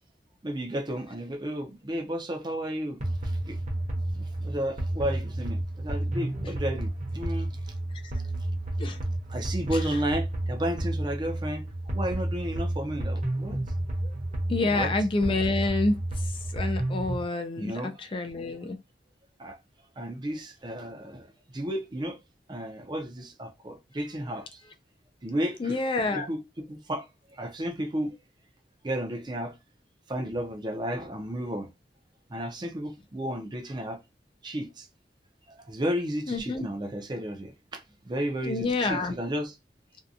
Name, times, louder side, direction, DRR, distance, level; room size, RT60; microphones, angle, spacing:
voice 1, 0.4-3.0 3.5-3.6 4.1-7.5 9.3-11.7 11.9-13.6 14.6-14.9 17.6-18.2 19.4-19.6 20.0-21.2 21.5-22.2 22.5-24.4 25.2-25.8 26.1-27.0 27.4-28.1 28.8-29.5 30.1-31.7 32.3-34.0 34.4-34.9 35.7-39.5, right 1 dB, 25° right, 0.5 m, -33 dB
sound 1, 3.0-17.2, right 1 dB, 40° right, 0.9 m, -31 dB
voice 2, 9.7-10.0 14.0-14.1 14.5-18.8 25.6-26.3 36.3-36.7 38.4-39.2, left 3 dB, 30° left, 0.3 m, -28 dB
2.7 x 2.2 x 2.4 m
head